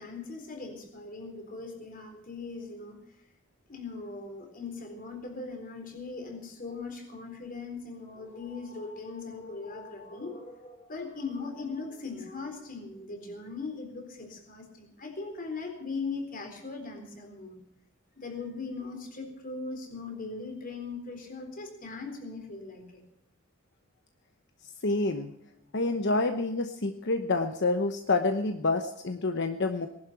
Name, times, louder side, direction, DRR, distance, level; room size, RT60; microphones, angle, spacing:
voice 1, 0.0-3.0 3.7-17.6 18.2-23.0, left 4 dB, 45° left, 4 dB, 4.0 m, -39 dB
voice 2, 24.8-25.3 25.7-29.9, left 3 dB, 60° left, 7 dB, 1.0 m, -28 dB
19.0 x 12.0 x 6.0 m, 0.78 s
head